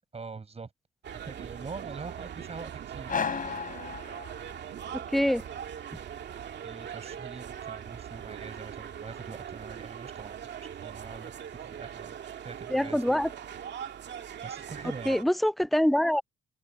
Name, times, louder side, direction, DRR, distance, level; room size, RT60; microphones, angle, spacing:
voice 1, 0.1-0.7 1.2-3.2 6.6-12.2 12.4-13.2 14.4-15.2, right 4 dB, 30° right, 6.6 m, -44 dB
sound 1, 1.0-15.2, right 9 dB, 60° right, 2.2 m, -41 dB
sound 2, 3.1-4.8, left 6 dB, 45° left, 6.5 m, -34 dB
voice 2, 4.9-5.4 12.7-13.3 15.1-16.2, equal, ahead, 0.4 m, -25 dB
cardioid pair, 90°, 20 cm